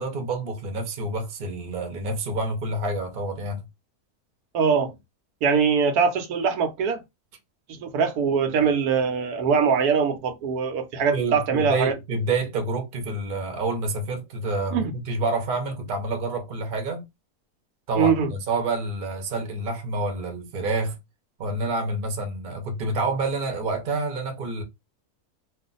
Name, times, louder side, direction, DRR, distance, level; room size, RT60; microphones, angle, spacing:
voice 1, 0.0-3.6 11.1-17.0 17.9-21.0 21.4-24.6, right 2 dB, 45° right, 0.8 m, -28 dB
voice 2, 4.5-4.9 5.4-7.0 7.7-11.9 14.7-14.9 18.0-18.3, right 6 dB, 80° right, 1.1 m, -22 dB
2.4 x 2.4 x 3.8 m
omnidirectional pair, 1.6 m